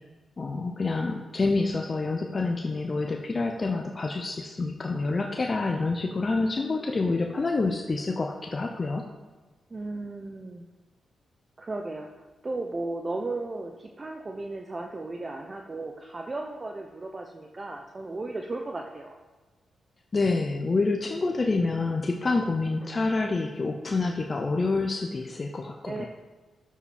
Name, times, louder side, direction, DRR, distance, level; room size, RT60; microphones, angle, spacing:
voice 1, 0.4-9.1 20.1-26.1, left 3 dB, 40° left, 2 dB, 0.7 m, -27 dB
voice 2, 9.7-10.6 11.6-19.1 25.9-26.1, right 2 dB, 35° right, 3 dB, 0.7 m, -35 dB
7.2 x 7.0 x 4.3 m, 1.3 s
cardioid pair, 65°, 0 cm